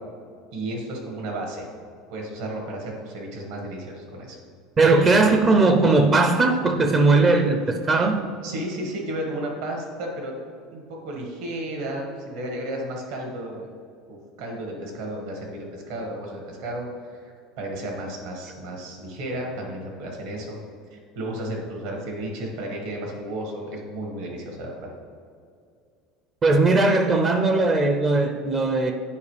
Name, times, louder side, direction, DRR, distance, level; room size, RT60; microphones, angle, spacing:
voice 1, 0.5-1.7 2.1-4.4 4.9-5.1 8.4-10.3 10.7-13.7 14.1-20.6 20.9-24.9, right 1 dB, 70° right, 0 dB, 1.8 m, -33 dB
voice 2, 4.8-8.3 26.4-28.9, right 3 dB, 25° right, 4 dB, 0.5 m, -19 dB
9.6 x 4.6 x 3.4 m, 2.3 s
cardioid pair, 150°, 0 cm